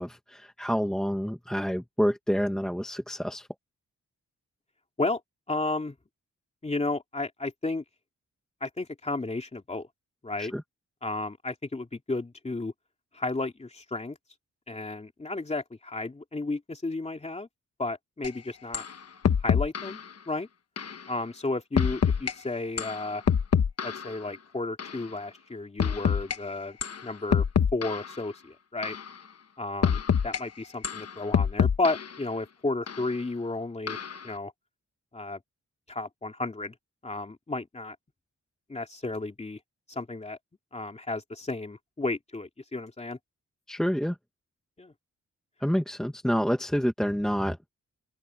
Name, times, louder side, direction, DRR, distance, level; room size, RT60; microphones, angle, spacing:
voice 1, 0.0-3.5 10.4-10.6 43.7-44.2 45.6-47.6, equal, ahead, 1.4 m, -28 dB
voice 2, 5.5-5.9 6.6-7.8 8.6-9.9 10.2-10.5 11.0-12.7 13.1-14.2 14.7-17.5 17.8-18.8 19.4-20.5 21.1-23.2 23.8-26.8 27.0-27.4 27.7-29.0 29.6-34.0 34.2-34.5 35.1-35.4 35.9-36.7 37.0-38.0 38.7-39.6 39.9-40.4 40.7-43.2 44.8-44.9, left 2 dB, 20° left, 2.8 m, -33 dB
sound 1, 18.2-18.3 18.7-18.9 19.2-20.0 20.8-21.0 21.8-22.3 22.8-24.2 24.8-25.0 25.8-26.4 26.8-27.0 27.3-28.2 28.8-29.1 29.8-30.4 30.8-32.2 32.9-33.0 33.9-34.2, left 7 dB, 55° left, 1.2 m, -26 dB
open air
wide cardioid pair, 155°, 30 cm